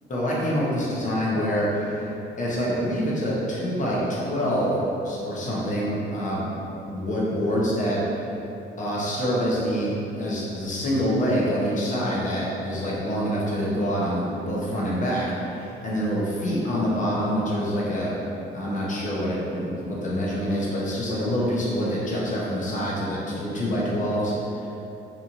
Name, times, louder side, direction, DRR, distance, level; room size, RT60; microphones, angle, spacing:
voice 1, 0.1-2.1 2.4-6.4 6.9-8.3 8.8-18.1 18.5-24.3, equal, 40° left, -6 dB, 0.8 m, -26 dB
2.9 x 2.5 x 2.5 m, 2.9 s
cardioid pair, 90°, 20 cm